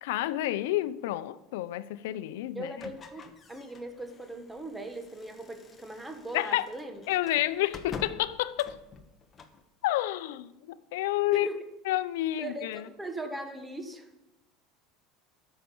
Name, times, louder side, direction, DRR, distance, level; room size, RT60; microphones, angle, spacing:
voice 1, 0.0-2.7 6.3-6.7 7.1-8.8 9.8-11.5 11.9-12.8, left 15 dB, 85° left, 0.6 m, -29 dB
voice 2, 2.5-3.2 3.5-7.0 11.3-11.7 12.4-14.1, right 1 dB, 10° right, 1.4 m, -39 dB
sound 1, 2.8-9.6, left 5 dB, 25° left, 1.1 m, -48 dB
12.0 x 6.5 x 7.0 m
supercardioid pair, 120°, 0 cm